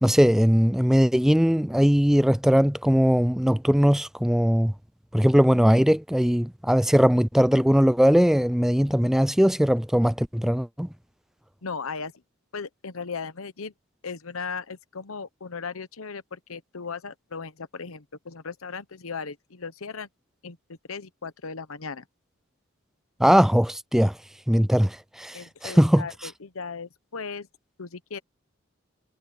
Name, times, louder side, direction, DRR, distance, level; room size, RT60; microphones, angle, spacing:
voice 1, 0.0-4.7 5.1-10.9 23.2-24.1 24.5-26.1, equal, ahead, 0.4 m, -20 dB
voice 2, 11.6-12.1 12.5-13.7 14.0-20.1 20.4-20.6 20.9-22.0 25.3-27.5 27.8-28.2, left 5 dB, 90° left, 1.0 m, -37 dB
head